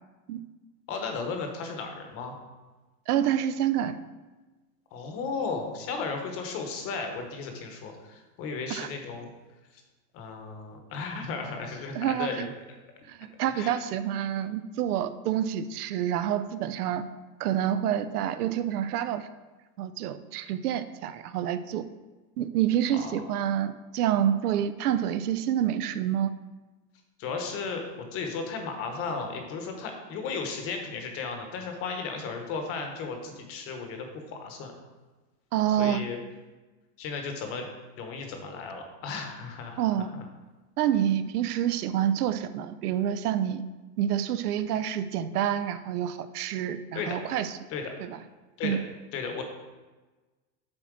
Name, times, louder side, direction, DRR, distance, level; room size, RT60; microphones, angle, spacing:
voice 1, 0.9-2.4 4.9-9.3 10.1-12.5 13.4-13.7 23.0-23.1 27.2-34.7 35.8-36.2 37.0-37.7 38.0-40.0 46.9-47.2 47.7-47.9 48.6-48.8 49.1-49.4, left 4 dB, 30° left, 4 dB, 1.1 m, -35 dB
voice 2, 3.1-4.0 8.7-8.9 11.9-12.5 13.1-17.1 17.4-19.3 19.8-21.9 22.4-26.3 35.5-36.0 39.8-40.1 40.8-43.6 44.0-47.6 48.0-48.2 48.6-48.8, right 10 dB, 65° right, 12 dB, 0.6 m, -28 dB
7.6 x 4.3 x 6.2 m, 1.2 s
supercardioid pair, 155°, 49 cm